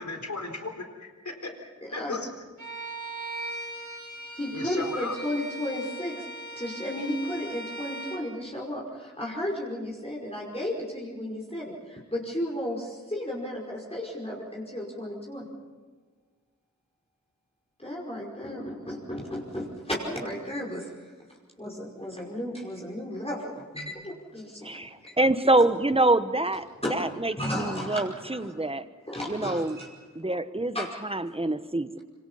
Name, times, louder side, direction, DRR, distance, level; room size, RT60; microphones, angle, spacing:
voice 1, 0.0-2.3 4.5-5.2, left 3 dB, 75° left, 4 dB, 4.1 m, -36 dB
Bowed string instrument, 2.6-8.3, right 1 dB, 75° right, 3.4 m, -39 dB
voice 2, 4.3-6.3 6.6-15.5 17.8-25.1 25.6-25.7 26.8-28.5 29.1-29.9 30.7-30.9, left 1 dB, 20° left, -4 dB, 5.5 m, -34 dB
voice 3, 24.6-28.8 29.3-29.8 30.1-30.7 31.0-32.0, right 2 dB, 20° right, 11 dB, 1.2 m, -26 dB
26.0 x 26.0 x 5.7 m, 1.5 s
wide cardioid pair, 45°, 29 cm